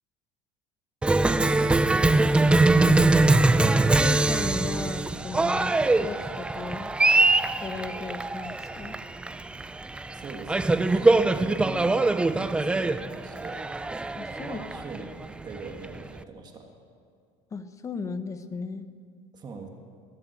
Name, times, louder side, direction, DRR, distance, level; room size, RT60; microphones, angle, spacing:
Cheering, 1.0-16.2, right 2 dB, 5° right, 0.3 m, -23 dB
voice 1, 3.8-6.9 7.6-9.0 14.2-14.6 17.5-18.9, left 4 dB, 20° left, 10 dB, 0.8 m, -36 dB
voice 2, 10.1-13.6 14.4-15.1 15.4-16.7 19.3-19.7, right 4 dB, 30° right, 3 dB, 1.7 m, -41 dB
22.0 x 7.4 x 8.2 m, 2.2 s
cardioid pair, 145°, 14 cm